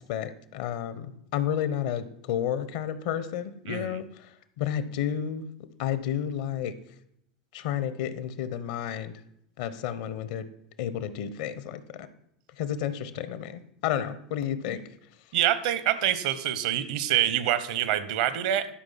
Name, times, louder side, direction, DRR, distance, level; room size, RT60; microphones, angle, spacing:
voice 1, 0.0-4.3 4.6-5.5 5.8-6.7 7.5-9.1 9.6-10.5 10.8-12.1 12.6-14.8, left 9 dB, 65° left, 13 dB, 0.9 m, -31 dB
voice 2, 3.7-4.0 15.3-18.7, right 11 dB, 65° right, 13 dB, 1.0 m, -26 dB
11.5 x 5.2 x 5.7 m, 0.75 s
hypercardioid pair, 85°, 4 cm